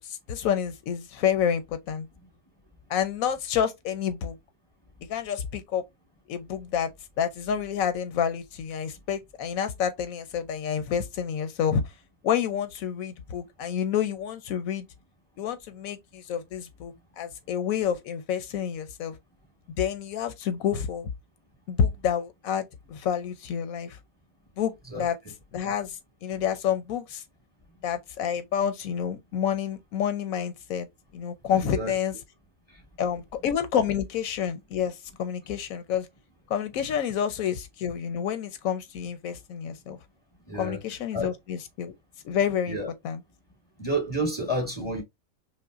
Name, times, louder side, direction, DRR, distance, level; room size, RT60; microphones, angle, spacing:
voice 1, 0.0-2.1 2.9-4.4 5.1-5.8 6.3-6.9 7.2-11.8 12.2-14.9 15.4-19.1 19.8-21.1 21.7-24.0 24.6-24.7 25.0-25.2 25.5-27.2 27.8-30.9 31.1-32.1 33.0-36.1 36.5-40.0 40.5-41.9 42.2-42.8 43.0-43.2, left 8 dB, 90° left, 1.1 m, -28 dB
voice 2, 31.5-31.9 32.7-32.8 40.5-40.8 41.1-41.3 42.7-42.9 43.8-45.0, right 1 dB, 20° left, 1.5 m, -30 dB
5.4 x 2.2 x 2.5 m
omnidirectional pair, 1.4 m